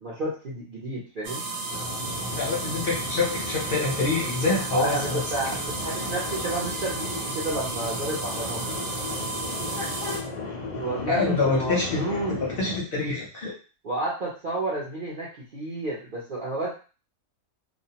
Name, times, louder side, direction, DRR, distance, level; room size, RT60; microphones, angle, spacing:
voice 1, 0.0-1.4 4.7-8.6 10.7-12.4 13.8-16.7, right 2 dB, 55° right, -6 dB, 0.6 m, -31 dB
sound 1, 1.2-10.2, right 3 dB, 70° right, 0.9 m, -33 dB
sound 2, 1.7-12.8, left 3 dB, 85° left, 0.3 m, -35 dB
voice 2, 2.3-5.2 9.4-10.2 11.0-12.0 12.3-13.5, left 3 dB, 55° left, -4 dB, 0.7 m, -27 dB
2.5 x 2.0 x 2.8 m, 0.36 s
omnidirectional pair, 1.5 m